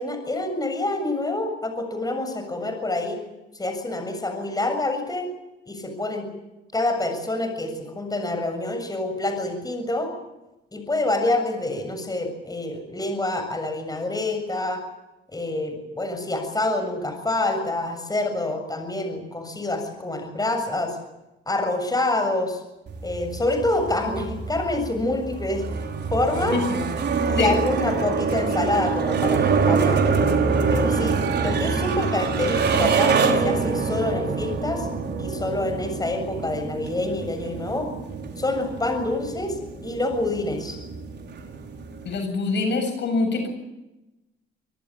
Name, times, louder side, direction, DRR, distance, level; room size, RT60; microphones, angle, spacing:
voice 1, 0.0-3.2 3.5-5.3 5.7-6.3 6.7-10.1 10.7-14.8 15.3-21.0 21.5-22.6 23.0-25.7 26.1-26.6 27.3-30.0 30.7-31.2 31.4-34.9 35.2-37.9 38.4-39.6 39.8-40.8, left 2 dB, 20° left, 6 dB, 7.2 m, -26 dB
sound 1, 22.9-42.2, right 5 dB, 60° right, 4.6 m, -25 dB
voice 2, 42.1-43.5, left 3 dB, 65° left, 6 dB, 7.7 m, -24 dB
25.5 x 19.0 x 8.9 m, 0.97 s
cardioid pair, 90°, 20 cm